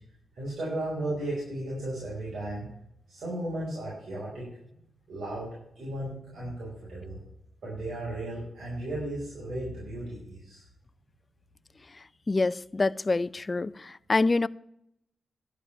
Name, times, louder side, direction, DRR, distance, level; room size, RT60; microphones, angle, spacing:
voice 1, 0.3-2.7 3.1-4.5 5.1-5.5 5.8-7.2 7.6-10.6, right 1 dB, 65° right, 5.3 m, -35 dB
voice 2, 12.3-14.5, left 3 dB, 30° left, 0.4 m, -26 dB
11.5 x 5.8 x 8.7 m
cardioid pair, 100°, 0 cm